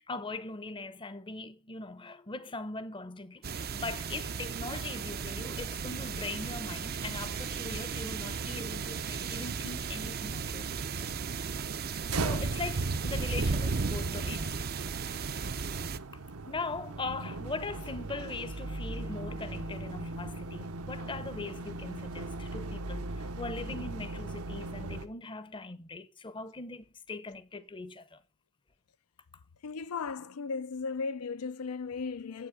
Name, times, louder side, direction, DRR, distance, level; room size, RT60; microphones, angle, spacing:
voice 1, 0.0-11.2 12.1-14.6 16.5-28.2, left 3 dB, 20° left, 0.7 m, -41 dB
sound 1, 3.4-16.0, right 4 dB, 45° right, 0.6 m, -35 dB
sound 2, 12.1-25.1, right 2 dB, 70° right, 1.0 m, -39 dB
voice 2, 29.6-32.5, left 5 dB, 75° left, 0.5 m, -36 dB
8.9 x 8.0 x 4.9 m
head